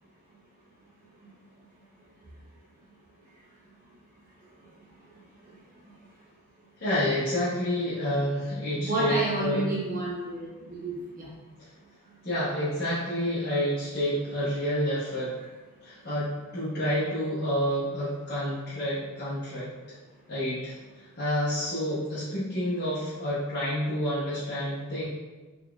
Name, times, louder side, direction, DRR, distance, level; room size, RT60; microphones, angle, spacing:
voice 1, 6.8-9.7 12.2-15.3 15.8-19.7 20.3-25.0, equal, 45° left, -11 dB, 1.0 m, -29 dB
voice 2, 8.7-11.3, right 2 dB, 40° right, -6 dB, 0.8 m, -30 dB
3.7 x 3.6 x 2.3 m, 1.2 s
head